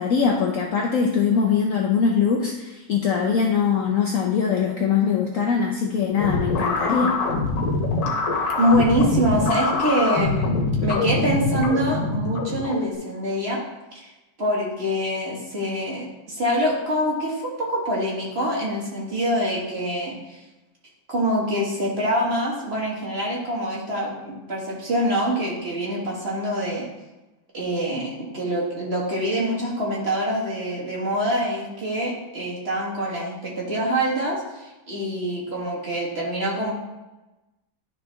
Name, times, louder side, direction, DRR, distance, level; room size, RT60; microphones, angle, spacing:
voice 1, 0.0-7.2, left 6 dB, 60° left, 0 dB, 0.9 m, -22 dB
sound 1, 6.2-12.9, left 3 dB, 80° left, 1.8 m, -24 dB
voice 2, 8.6-10.5 10.8-13.6 13.9-14.1 14.4-20.4 21.1-26.9 27.5-36.7, equal, 35° right, -5 dB, 2.0 m, -25 dB
11.0 x 3.9 x 3.4 m, 1.0 s
omnidirectional pair, 1.9 m